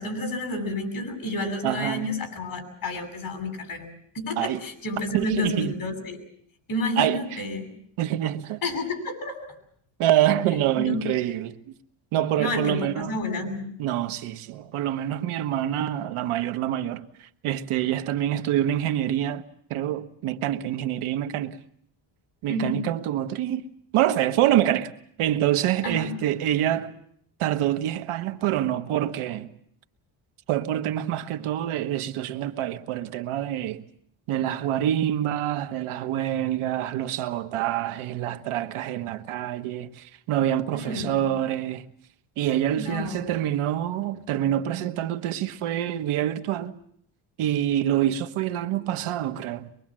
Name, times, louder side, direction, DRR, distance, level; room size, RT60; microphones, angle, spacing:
voice 1, 0.0-3.9 4.1-6.2 6.7-7.7 8.6-9.4 10.5-11.1 12.4-13.7 22.5-22.9 25.8-26.1 40.7-41.3 42.7-43.4, left 1 dB, 45° left, 7.5 m, -30 dB
voice 2, 1.6-2.0 4.4-4.6 5.1-5.7 7.0-7.4 8.0-8.6 10.0-11.6 12.1-13.1 13.8-17.0 17.4-19.4 19.7-21.6 22.4-23.6 23.9-24.9 25.2-26.9 27.4-29.5 30.5-33.8 34.3-41.9 42.4-46.8 47.4-49.7, right 12 dB, 90° right, 1.4 m, -26 dB
24.5 x 23.0 x 7.6 m
cardioid pair, 130°, 49 cm